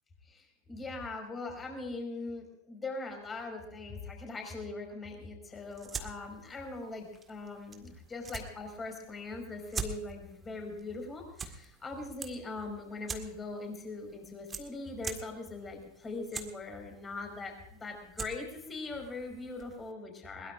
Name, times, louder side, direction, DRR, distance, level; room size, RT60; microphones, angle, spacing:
voice 1, 0.2-20.5, left 3 dB, 15° left, 3 dB, 5.2 m, -41 dB
sound 1, 5.6-19.9, right 5 dB, 15° right, 1.8 m, -46 dB
22.0 x 21.0 x 2.6 m, 0.76 s
figure-of-eight pair, 90°, 0 cm